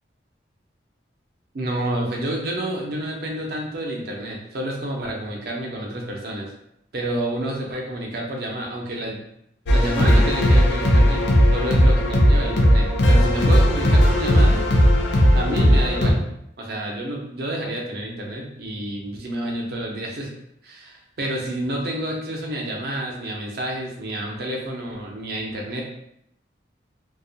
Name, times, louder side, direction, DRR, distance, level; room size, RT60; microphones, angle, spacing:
voice 1, 1.5-6.5 6.9-9.2 9.7-11.2 11.5-14.6 15.3-16.2 16.6-20.3 20.6-25.8, right 1 dB, 55° right, -1 dB, 0.5 m, -29 dB
sound 1, 9.7-16.1, equal, 70° left, 0.4 m, -16 dB
2.3 x 2.1 x 2.6 m, 0.75 s
head